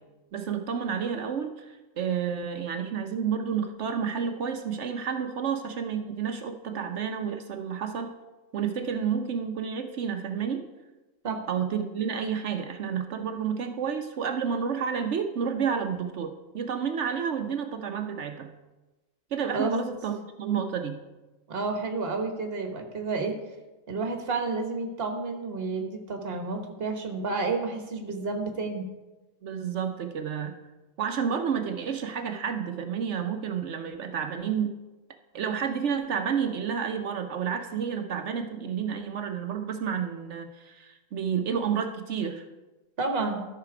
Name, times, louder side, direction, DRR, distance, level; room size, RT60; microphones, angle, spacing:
voice 1, 0.3-8.1 8.5-10.6 11.5-18.5 19.3-21.0 29.4-30.5 31.0-34.7 35.3-42.5, right 7 dB, 65° right, 7 dB, 0.9 m, -30 dB
voice 2, 19.5-19.8 21.5-23.3 23.9-28.8 43.0-43.4, right 3 dB, 50° right, 4 dB, 1.4 m, -30 dB
13.0 x 5.9 x 4.9 m, 1.1 s
omnidirectional pair, 1.4 m